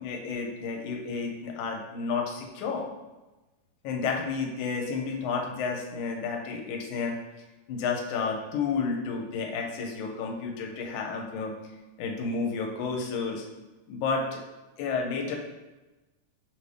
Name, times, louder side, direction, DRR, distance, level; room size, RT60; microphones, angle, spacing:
voice 1, 0.0-2.9 3.8-7.2 7.7-11.5 12.0-13.5 13.9-14.4 14.8-15.4, left 5 dB, 85° left, 1 dB, 2.0 m, -31 dB
5.8 x 2.6 x 3.3 m, 1.1 s
omnidirectional pair, 3.4 m